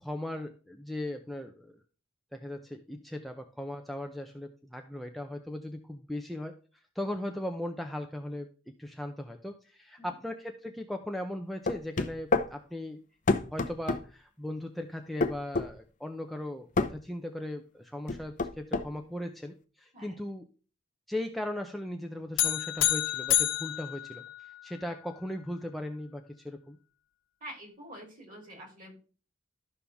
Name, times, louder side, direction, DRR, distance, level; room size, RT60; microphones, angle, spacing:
voice 1, 0.0-1.7 2.3-6.5 7.0-8.5 8.8-13.0 13.5-20.5 21.1-24.2 24.6-26.8, left 1 dB, ahead, 3 dB, 0.6 m, -38 dB
sound 1, 11.7-12.5 13.3-14.0 15.2-15.7 16.8-16.9 18.1-18.9, left 3 dB, 40° left, 0.7 m, -27 dB
sound 2, 22.4-24.8, left 13 dB, 75° left, 1.1 m, -29 dB
voice 2, 27.4-28.9, right 1 dB, 45° right, 1 dB, 3.6 m, -46 dB
12.5 x 5.6 x 3.5 m, 0.37 s
head